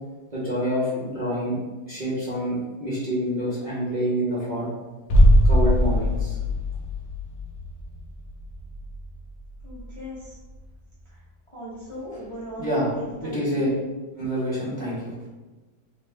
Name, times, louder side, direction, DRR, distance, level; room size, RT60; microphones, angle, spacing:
voice 1, 0.3-1.6 1.9-4.7 5.4-6.4 12.6-12.9 13.2-13.7 14.2-15.1, equal, 35° right, -9 dB, 0.8 m, -27 dB
sound 1, 5.1-10.8 11.1-11.2, equal, 70° left, 0.4 m, -22 dB
voice 2, 9.6-10.4 11.0-11.2 11.5-13.6, equal, 30° left, -9 dB, 0.6 m, -38 dB
3.3 x 3.0 x 3.4 m, 1.2 s
omnidirectional pair, 1.8 m